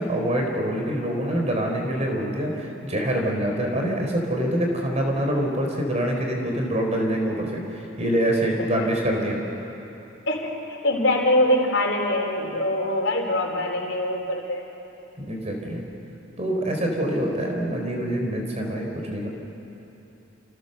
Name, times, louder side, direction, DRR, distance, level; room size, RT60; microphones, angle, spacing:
voice 1, 0.0-9.4 15.2-15.8 16.4-19.3, right 1 dB, 35° right, 1 dB, 4.2 m, -25 dB
voice 2, 10.3-14.6, left 1 dB, 65° left, 1 dB, 4.5 m, -23 dB
30.0 x 29.0 x 6.9 m, 2.9 s
head